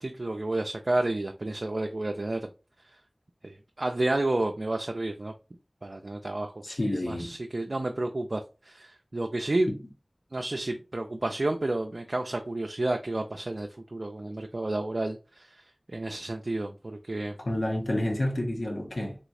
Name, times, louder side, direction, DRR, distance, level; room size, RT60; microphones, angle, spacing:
voice 1, 0.0-2.5 3.4-5.3 5.8-9.7 10.3-17.4, right 2 dB, 70° right, 0.3 m, -31 dB
voice 2, 6.6-7.3 9.7-9.8 17.4-19.2, left 1 dB, 80° left, 0.9 m, -29 dB
3.4 x 3.0 x 2.4 m
wide cardioid pair, 40°, 0 cm